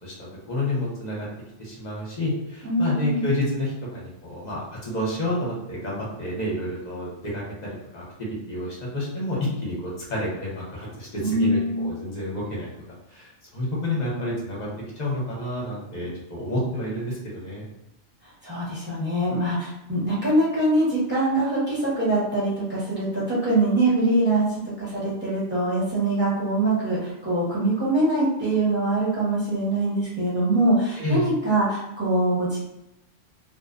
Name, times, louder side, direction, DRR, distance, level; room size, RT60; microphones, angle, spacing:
voice 1, 0.0-1.3 1.6-12.7 13.1-14.7 15.0-17.6 31.0-31.2, left 1 dB, 40° left, -5 dB, 0.8 m, -29 dB
voice 2, 2.6-3.2 11.2-11.8 18.4-32.6, right 2 dB, 10° right, -10 dB, 0.9 m, -23 dB
2.5 x 2.1 x 2.4 m, 0.88 s
omnidirectional pair, 1.3 m